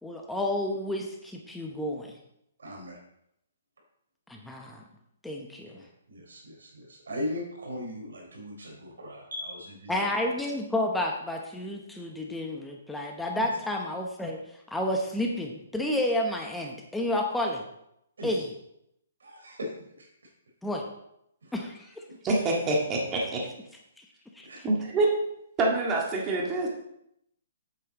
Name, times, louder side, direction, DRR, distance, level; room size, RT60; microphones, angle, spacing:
voice 1, 0.0-2.2 4.3-4.8 5.2-5.8 9.9-14.4 14.7-17.6 18.2-18.5 20.6-20.8 21.5-22.0 24.0-24.1 24.4-24.5, left 1 dB, 5° left, 1 dB, 0.9 m, -30 dB
voice 2, 2.6-3.0 5.7-10.1 13.3-13.4 18.2-18.4 19.2-19.7 20.0-20.1 21.4-21.5 22.1-22.2 24.4-24.6, left 1 dB, 90° right, 1 dB, 4.0 m, -38 dB
voice 3, 22.2-23.4 24.6-25.1 25.6-26.7, right 2 dB, 20° right, -2 dB, 1.8 m, -26 dB
8.5 x 8.4 x 4.1 m, 0.78 s
hypercardioid pair, 155°, 0 cm